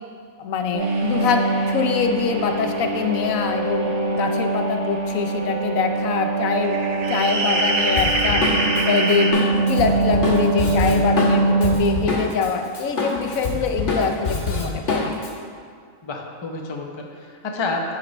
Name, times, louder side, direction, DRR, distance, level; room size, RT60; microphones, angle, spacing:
voice 1, 0.4-6.8 7.1-8.4 8.9-9.3 9.7-15.1, left 6 dB, 80° left, 5 dB, 1.1 m, -24 dB
sound 1, 0.7-11.8, right 3 dB, 50° right, 1.2 m, -23 dB
sound 2, 0.8-5.3 5.7-5.8 6.6-9.3, right 2 dB, 85° right, 1.3 m, -27 dB
Drum kit, 8.0-12.5 12.7-15.3, left 3 dB, 55° left, 1.6 m, -25 dB
voice 2, 10.7-11.1 16.0-18.0, left 3 dB, 30° left, 1 dB, 0.6 m, -30 dB
9.9 x 4.2 x 5.2 m, 2.1 s
omnidirectional pair, 1.4 m